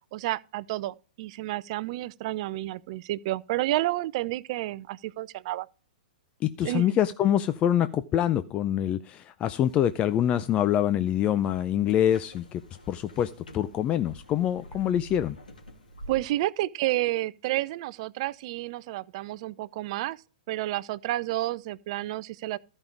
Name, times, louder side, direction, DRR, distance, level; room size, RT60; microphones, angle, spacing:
voice 1, 0.1-5.7 6.6-6.9 16.1-20.2 20.5-22.6, right 16 dB, 45° right, 0.5 m, -30 dB
voice 2, 6.4-15.4, left 10 dB, 25° left, 0.5 m, -25 dB
sound 1, 9.6-16.3, equal, 80° left, 2.7 m, -48 dB
14.0 x 5.4 x 4.7 m
figure-of-eight pair, 110°, 5 cm